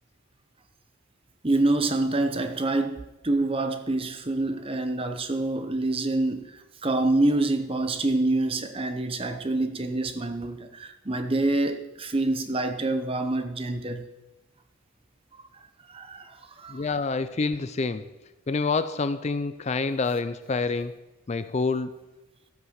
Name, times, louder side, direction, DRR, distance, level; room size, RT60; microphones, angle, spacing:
voice 1, 1.4-14.1 15.9-16.8, right 2 dB, 25° right, 0.8 m, -26 dB
voice 2, 16.7-18.0 18.5-20.9 21.3-21.9, left 4 dB, 30° left, 0.4 m, -27 dB
12.5 x 8.2 x 6.5 m
head